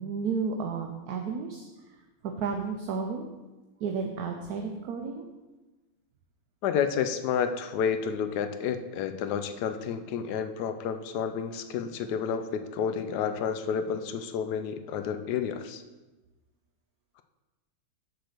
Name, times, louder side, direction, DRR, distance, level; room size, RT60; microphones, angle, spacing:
voice 1, 0.0-1.7 2.2-3.3 3.8-5.3, right 5 dB, 70° right, 3 dB, 1.1 m, -32 dB
voice 2, 6.6-15.8, left 7 dB, 80° left, 8 dB, 1.1 m, -30 dB
6.8 x 4.0 x 6.5 m, 1.1 s
omnidirectional pair, 1.8 m